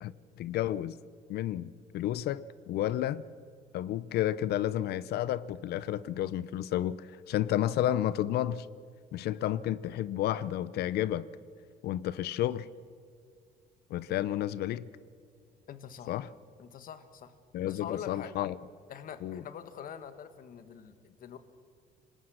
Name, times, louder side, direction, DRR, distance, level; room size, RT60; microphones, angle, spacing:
voice 1, 0.0-1.0 1.3-3.2 3.7-8.7 9.1-11.3 11.8-12.7 13.9-14.9 16.1-16.3 17.5-18.6 19.2-19.4, left 12 dB, 70° left, 18 dB, 0.6 m, -31 dB
voice 2, 15.7-16.1 16.6-17.4 17.6-18.3 18.9-21.4, left 8 dB, 55° left, 10 dB, 1.7 m, -44 dB
27.5 x 19.5 x 6.4 m, 2.2 s
cardioid pair, 110°, 17 cm